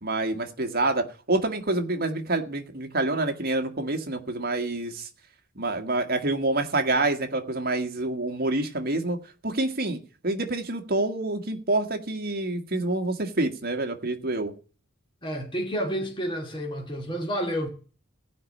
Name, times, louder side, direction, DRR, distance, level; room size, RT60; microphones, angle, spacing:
voice 1, 0.0-5.1 5.5-9.2 9.4-10.0 10.2-14.5, right 2 dB, 45° right, 1.7 m, -27 dB
voice 2, 15.2-17.7, equal, 25° left, 2.3 m, -30 dB
16.5 x 5.4 x 8.6 m
head